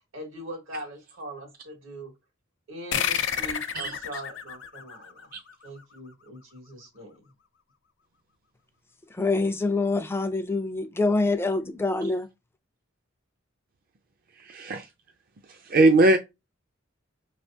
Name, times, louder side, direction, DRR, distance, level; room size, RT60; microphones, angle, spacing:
voice 1, 0.1-2.1 2.7-5.3 5.6-7.3, right 1 dB, 85° right, 1.8 m, -41 dB
sound 1, 2.9-6.0, left 8 dB, 65° left, 0.6 m, -31 dB
voice 2, 9.1-12.3, left 3 dB, 10° left, 0.4 m, -25 dB
voice 3, 14.5-14.8 15.7-16.2, right 2 dB, 45° right, 0.4 m, -19 dB
5.5 x 3.3 x 2.7 m
head